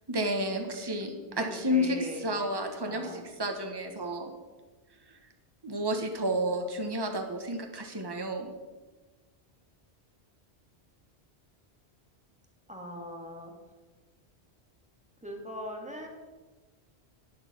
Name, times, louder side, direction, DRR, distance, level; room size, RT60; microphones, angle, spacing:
voice 1, 0.1-4.3 5.1-5.2 5.6-8.5, equal, 20° right, 4 dB, 1.4 m, -31 dB
voice 2, 1.3-2.2 2.8-3.2 12.7-13.5 15.2-16.1, equal, 5° right, 1 dB, 2.2 m, -40 dB
11.0 x 10.0 x 6.1 m, 1.3 s
omnidirectional pair, 1.1 m